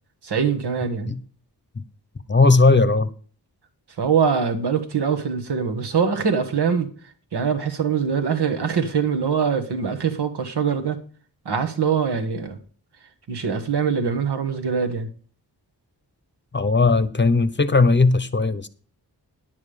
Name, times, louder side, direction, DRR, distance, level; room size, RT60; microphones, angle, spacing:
voice 1, 0.2-1.1 4.0-6.9 7.3-11.0 11.4-12.6 13.3-15.1, right 6 dB, 80° right, 1.4 m, -23 dB
voice 2, 2.3-3.1 16.5-18.7, left 3 dB, 30° left, 0.8 m, -17 dB
10.5 x 7.5 x 5.0 m
wide cardioid pair, 75°, 40 cm